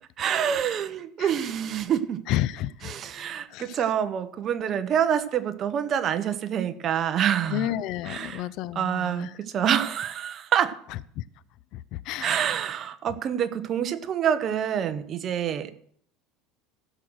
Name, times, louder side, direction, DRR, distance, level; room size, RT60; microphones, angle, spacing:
voice 1, 0.2-2.2 2.8-7.7 8.1-8.5 8.7-10.8 12.2-15.7, right 9 dB, 35° right, 10 dB, 1.0 m, -26 dB
voice 2, 2.3-2.9 3.5-3.8 7.5-9.3 11.2-11.3 11.7-12.4, left 13 dB, 50° left, 19 dB, 0.5 m, -31 dB
15.5 x 6.5 x 6.3 m, 0.63 s
supercardioid pair, 145°, 0 cm